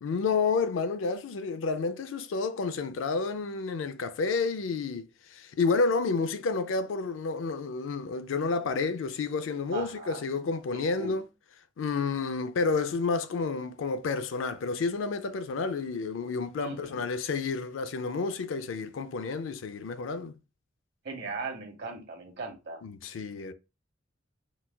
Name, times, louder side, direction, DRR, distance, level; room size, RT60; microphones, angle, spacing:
voice 1, 0.0-11.3 11.8-20.3 22.8-23.5, left 4 dB, 85° left, 0.4 m, -30 dB
voice 2, 9.7-10.2 10.9-11.1 16.6-17.0 21.0-22.8, right 3 dB, 60° right, 1.0 m, -38 dB
3.9 x 2.3 x 2.2 m
head